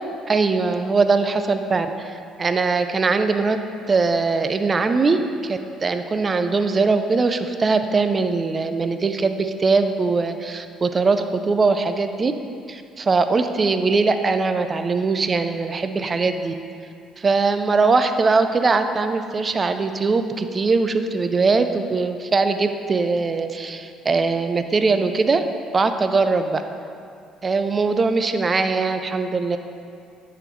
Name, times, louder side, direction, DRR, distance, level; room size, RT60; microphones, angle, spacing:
voice 1, 0.3-3.6 3.9-12.3 12.7-16.5 17.2-25.5 25.7-26.6 27.4-29.6, right 4 dB, 35° right, 8 dB, 0.4 m, -21 dB
9.5 x 3.9 x 3.1 m, 2.4 s
supercardioid pair, 75°, 0 cm